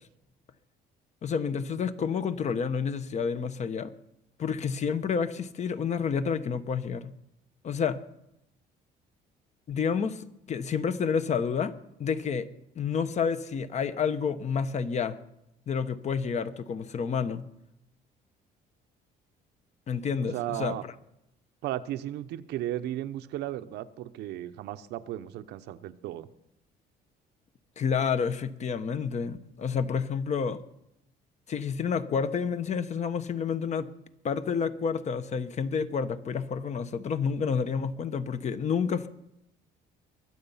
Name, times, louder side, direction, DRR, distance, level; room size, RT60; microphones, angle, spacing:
voice 1, 1.2-3.9 4.4-7.1 7.6-8.0 9.7-11.7 12.0-12.5 12.7-15.2 15.7-17.4 19.9-20.9 27.8-30.6 31.5-33.9 34.2-39.1, left 6 dB, 45° left, 12 dB, 1.0 m, -29 dB
voice 2, 20.3-20.8 21.6-26.3, right 13 dB, 80° right, 11 dB, 0.9 m, -35 dB
23.0 x 8.0 x 5.7 m, 0.82 s
cardioid pair, 110°, 17 cm